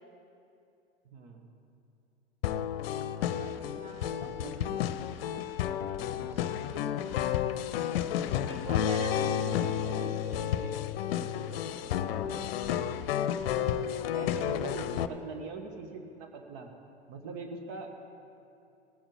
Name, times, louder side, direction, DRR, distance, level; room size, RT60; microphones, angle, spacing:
voice 1, 1.1-1.5 4.0-4.8 9.2-10.8 11.1-12.6 13.4-13.8 14.1-16.7 17.1-17.9, right 3 dB, 55° right, 4 dB, 1.7 m, -43 dB
sound 1, 2.4-15.1, left 10 dB, 65° left, 0.6 m, -31 dB
voice 2, 3.3-4.3 4.6-4.7 5.2-5.3 5.8-7.1 8.2-10.2, right 2 dB, 20° right, 3 dB, 1.5 m, -45 dB
18.5 x 8.8 x 5.1 m, 2.6 s
hypercardioid pair, 90°, 32 cm